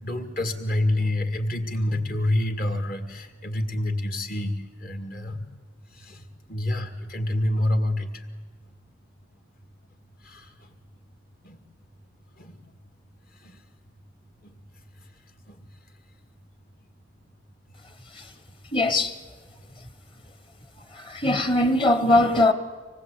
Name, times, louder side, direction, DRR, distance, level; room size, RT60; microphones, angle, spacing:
voice 1, 0.0-5.5 5.9-8.3 10.2-10.7 11.4-11.6 12.4-12.6 13.4-13.6 14.4-14.5 15.5-15.6, left 1 dB, 50° left, 2.1 m, -28 dB
voice 2, 18.7-19.1 21.1-22.5, left 2 dB, 25° left, 1.4 m, -20 dB
25.0 x 19.5 x 8.4 m
head